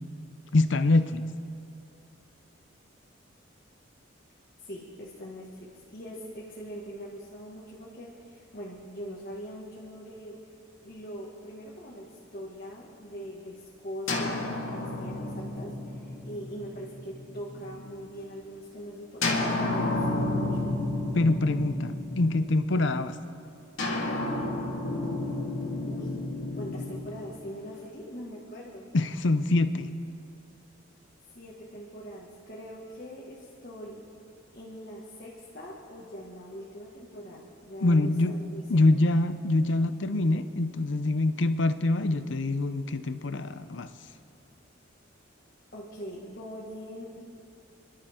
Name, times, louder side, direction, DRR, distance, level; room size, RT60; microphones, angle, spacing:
voice 1, 0.5-1.3 21.1-23.2 28.9-29.9 37.8-38.3 38.7-43.9, left 2 dB, 65° left, 11 dB, 0.7 m, -25 dB
voice 2, 4.6-10.4 10.8-20.6 25.9-26.2 26.6-28.9 31.3-34.0 34.5-38.8 45.7-47.2, equal, 45° left, -4 dB, 1.9 m, -42 dB
sound 1, 14.1-17.9 19.2-22.8 23.8-27.9, left 2 dB, 80° left, 2.2 m, -31 dB
29.5 x 11.5 x 3.7 m, 2.5 s
head